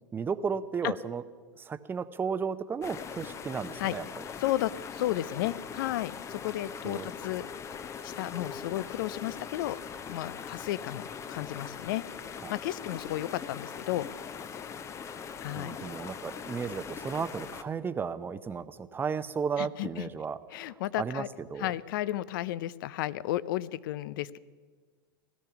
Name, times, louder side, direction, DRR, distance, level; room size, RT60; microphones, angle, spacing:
voice 1, 0.1-1.2 1.6-4.1 6.8-7.1 12.4-12.5 15.5-21.2 21.5-21.7, right 6 dB, 15° right, 12 dB, 0.7 m, -34 dB
sound 1, 2.8-17.6, left 6 dB, 25° left, 0.7 m, -41 dB
voice 2, 4.4-7.4 8.0-9.8 10.1-12.0 12.5-14.1 15.4-15.7 19.6-20.1 20.5-21.3 21.6-24.4, left 15 dB, 65° left, 19 dB, 0.5 m, -33 dB
17.0 x 12.5 x 5.9 m, 1.5 s
hypercardioid pair, 110°, 12 cm